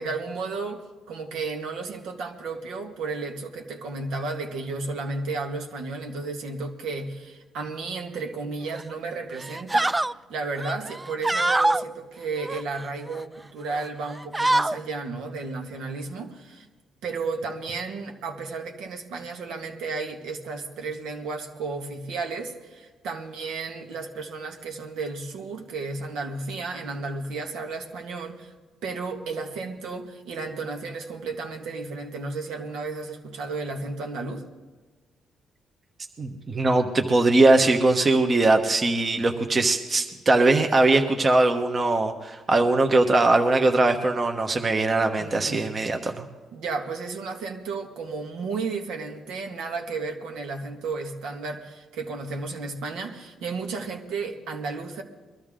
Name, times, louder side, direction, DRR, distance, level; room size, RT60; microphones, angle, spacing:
voice 1, 0.0-9.9 10.3-16.7 17.0-28.5 28.8-34.4 45.2-45.6 46.5-55.0, right 3 dB, 85° right, 3 dB, 1.9 m, -33 dB
sound 1, 8.7-9.0 9.4-10.1 10.6-11.8 12.4-13.2 13.7-13.9 14.1-14.8, right 2 dB, 15° right, 0.3 m, -25 dB
voice 2, 36.2-46.3, right 2 dB, 35° right, 4 dB, 1.2 m, -21 dB
22.0 x 13.5 x 3.8 m, 1.3 s
cardioid pair, 90°, 0 cm